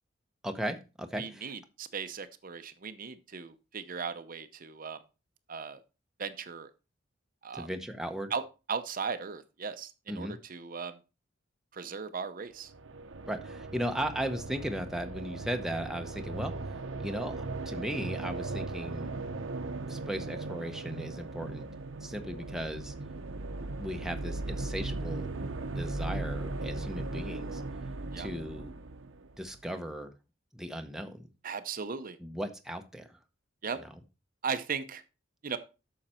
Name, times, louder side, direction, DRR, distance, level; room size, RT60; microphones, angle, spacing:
voice 1, 0.4-1.5 7.5-8.3 10.1-10.4 13.3-19.1 19.9-21.7 22.0-22.9 23.8-25.3 25.7-27.6 28.2-28.7 29.4-30.1 30.5-31.3 32.2-33.2, equal, ahead, 5 dB, 0.8 m, -37 dB
voice 2, 1.1-5.0 5.5-5.8 6.2-6.7 7.4-7.7 8.3-8.4 8.7-11.0 11.7-12.7 28.1-28.3 31.4-32.2 33.6-33.8 34.4-35.0 35.4-35.6, right 5 dB, 45° right, 10 dB, 0.7 m, -37 dB
sound 1, 12.6-29.6, right 2 dB, 80° right, 0.8 m, -38 dB
8.9 x 6.5 x 4.3 m, 0.31 s
head